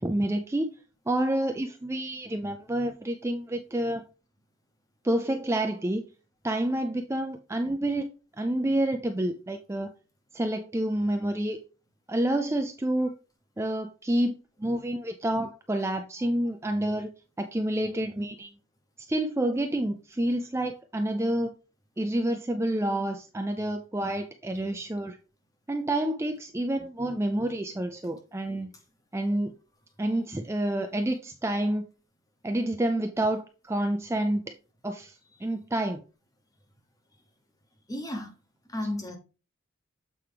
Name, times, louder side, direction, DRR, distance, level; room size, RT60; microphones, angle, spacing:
voice 1, 0.0-0.7 1.1-4.0 5.0-6.0 6.4-8.1 8.4-9.9 10.3-11.6 12.1-13.1 13.6-17.1 17.4-18.5 19.1-21.5 22.0-25.2 25.7-28.7 29.1-29.5 30.0-31.8 32.4-34.5 34.8-36.0, right 1 dB, 10° right, 0.4 m, -28 dB
voice 2, 37.9-38.4 38.7-39.2, left 1 dB, 15° left, 0.9 m, -33 dB
7.5 x 4.5 x 3.4 m
head